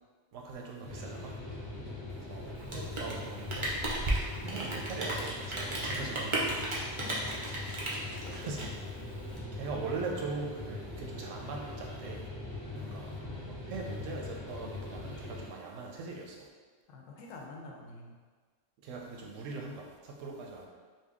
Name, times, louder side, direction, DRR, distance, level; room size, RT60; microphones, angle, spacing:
voice 1, 0.3-1.4 2.1-3.8 4.4-6.6 8.3-8.7 9.5-12.2 12.8-13.1 13.7-16.5 18.8-20.7, right 3 dB, 85° right, 0 dB, 0.9 m, -41 dB
sound 1, 0.8-15.5, left 2 dB, 20° left, 0.9 m, -41 dB
Rain, 2.6-9.4, right 2 dB, 45° right, 0.4 m, -34 dB
sound 2, 5.0-8.7 9.2-9.3, left 1 dB, 60° left, 0.4 m, -52 dB
voice 2, 7.0-7.4 7.9-8.8 12.6-13.7 16.9-18.2, left 3 dB, 90° left, 0 dB, 1.0 m, -49 dB
2.8 x 2.6 x 3.5 m, 1.5 s
omnidirectional pair, 1.3 m